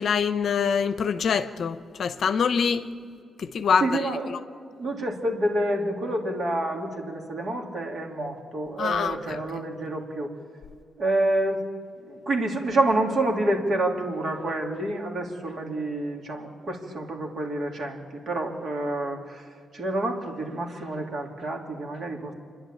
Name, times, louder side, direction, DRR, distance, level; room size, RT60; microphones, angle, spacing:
voice 1, 0.0-2.9 3.4-4.0 4.3-4.4 8.8-9.4, left 6 dB, 55° left, 0.8 m, -25 dB
voice 2, 3.8-4.3 4.8-10.3 11.0-11.7 12.0-19.5 19.7-22.3, right 1 dB, 50° right, 2.9 m, -28 dB
28.0 x 11.0 x 8.8 m
cardioid pair, 145°, 0 cm